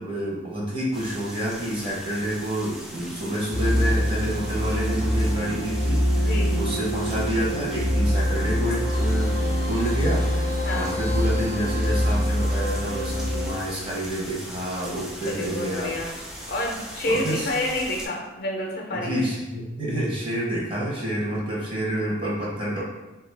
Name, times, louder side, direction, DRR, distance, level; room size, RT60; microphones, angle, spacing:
voice 1, 0.0-15.9 17.1-17.5 18.9-22.8, right 1 dB, 25° right, -5 dB, 0.8 m, -28 dB
sound 1, 0.9-18.1, equal, 5° right, 0.3 m, -40 dB
sound 2, 3.5-13.5, equal, 50° right, 1.1 m, -24 dB
voice 2, 6.1-6.6 9.4-9.5 10.6-10.9 15.3-16.1 16.5-19.3, left 1 dB, 50° left, 0 dB, 0.6 m, -29 dB
3.2 x 2.4 x 3.2 m, 1.1 s
head